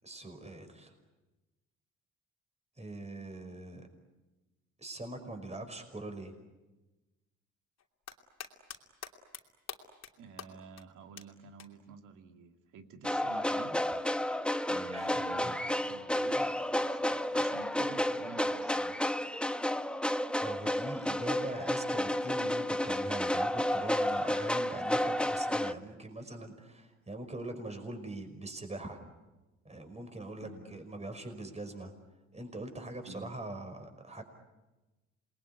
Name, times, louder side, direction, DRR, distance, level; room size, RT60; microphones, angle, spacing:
voice 1, 0.0-0.9 2.8-3.8 4.8-6.3 14.9-15.1 15.4-15.6 20.4-29.0 29.7-31.9 32.3-34.2, right 2 dB, 20° right, 6 dB, 5.4 m, -42 dB
sound 1, 7.8-8.8 9.0-9.4 9.7-10.1 10.4-10.5 10.8-10.9 11.2-11.3 11.6-11.7 13.2-13.3, left 8 dB, 60° left, 2.9 m, -43 dB
voice 2, 10.2-13.8 14.7-19.0 30.4-30.6 33.1-33.3, right 4 dB, 85° right, 5 dB, 2.5 m, -49 dB
sound 2, 13.0-25.7, left 1 dB, 5° left, 1.0 m, -31 dB
27.5 x 21.0 x 9.6 m, 1.1 s
cardioid pair, 90°, 30 cm